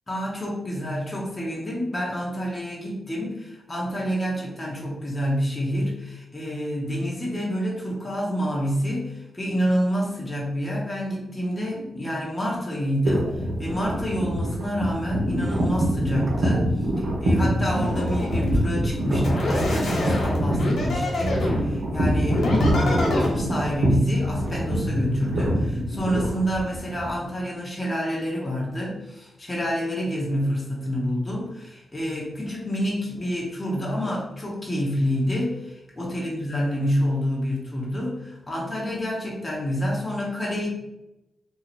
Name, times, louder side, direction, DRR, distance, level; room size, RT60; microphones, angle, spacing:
voice 1, 0.1-40.7, equal, 20° left, -4 dB, 0.9 m, -28 dB
sound 1, 13.1-27.1, equal, 85° right, 0.9 m, -25 dB
sound 2, 17.7-18.6 19.2-21.6 22.3-23.3, left 1 dB, 80° left, 1.1 m, -25 dB
2.9 x 2.4 x 4.1 m, 0.92 s
cardioid pair, 105°, 0 cm